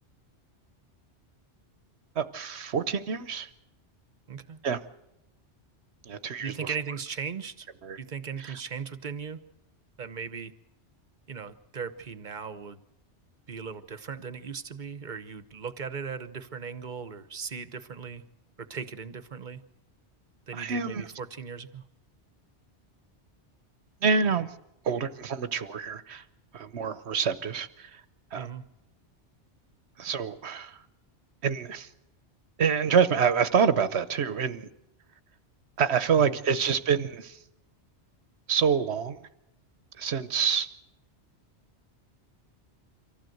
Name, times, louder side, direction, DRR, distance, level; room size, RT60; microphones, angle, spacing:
voice 1, 2.2-3.5 4.6-4.8 6.1-6.7 7.8-8.0 8.4-8.6 20.5-21.0 24.0-24.5 24.8-26.2 26.5-28.0 28.3-28.5 30.0-30.8 31.4-31.9 32.6-34.7 35.8-37.4 38.5-39.2 40.0-40.7, right 6 dB, 70° right, 13 dB, 1.2 m, -27 dB
voice 2, 4.3-4.6 6.4-7.7 8.0-9.4 10.0-10.5 11.3-12.8 13.5-18.2 18.6-19.6 20.5-21.8 28.3-28.6 36.2-36.4, right 6 dB, 45° right, 12 dB, 1.1 m, -38 dB
24.5 x 15.0 x 7.8 m, 0.88 s
omnidirectional pair, 1.2 m